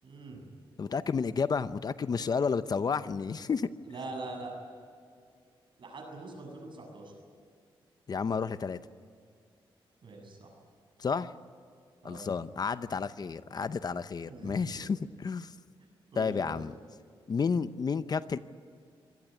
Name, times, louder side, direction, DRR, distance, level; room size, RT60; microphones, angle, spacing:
voice 1, 0.0-0.4 3.8-4.5 5.8-7.1 10.0-10.6 12.0-12.3 14.2-14.8 16.1-16.6, right 3 dB, 60° right, 2 dB, 7.7 m, -43 dB
voice 2, 0.8-3.7 8.1-8.8 11.0-11.3 12.0-15.5 16.2-16.7 17.3-18.4, left 5 dB, 45° left, 13 dB, 0.7 m, -31 dB
25.0 x 18.0 x 9.5 m, 2.2 s
wide cardioid pair, 110°, 9 cm